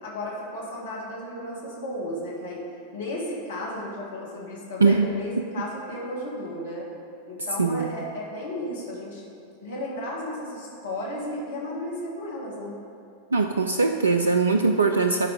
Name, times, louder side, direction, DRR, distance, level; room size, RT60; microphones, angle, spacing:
voice 1, 0.0-2.6 2.9-6.9 7.3-9.3 9.6-12.8, left 1 dB, 65° left, -4 dB, 1.7 m, -34 dB
voice 2, 13.3-15.3, right 4 dB, 75° right, 6 dB, 0.3 m, -21 dB
12.0 x 4.7 x 5.0 m, 2.6 s
figure-of-eight pair, 90°, 0 cm